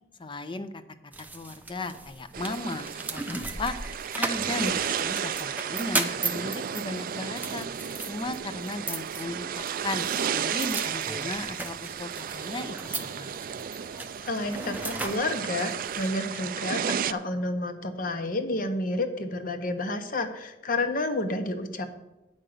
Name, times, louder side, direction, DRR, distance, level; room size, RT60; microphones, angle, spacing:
voice 1, 0.2-0.8 1.3-3.7 4.2-7.7 8.1-10.1 10.3-13.3, left 2 dB, 30° left, 10 dB, 0.6 m, -35 dB
sound 1, 1.1-16.1, right 3 dB, 10° right, 0.6 m, -37 dB
sound 2, 2.3-17.1, right 8 dB, 50° right, 0.4 m, -33 dB
voice 2, 14.2-21.9, left 2 dB, 50° left, 7 dB, 1.0 m, -30 dB
8.9 x 5.4 x 7.8 m, 0.95 s
head